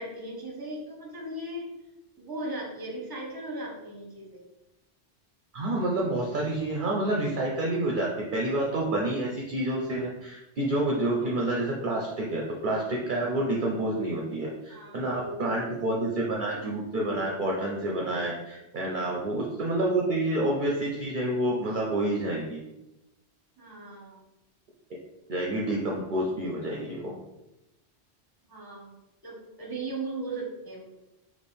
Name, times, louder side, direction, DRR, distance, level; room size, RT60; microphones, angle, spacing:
voice 1, 0.0-1.7 2.2-4.4 14.7-16.0 18.9-19.1 23.6-24.2 28.5-28.9 29.2-30.8, right 1 dB, 20° right, -3 dB, 1.0 m, -38 dB
voice 2, 5.5-22.6 25.3-27.1, right 1 dB, 55° right, -2 dB, 0.7 m, -28 dB
3.3 x 3.0 x 4.3 m, 0.95 s
omnidirectional pair, 1.1 m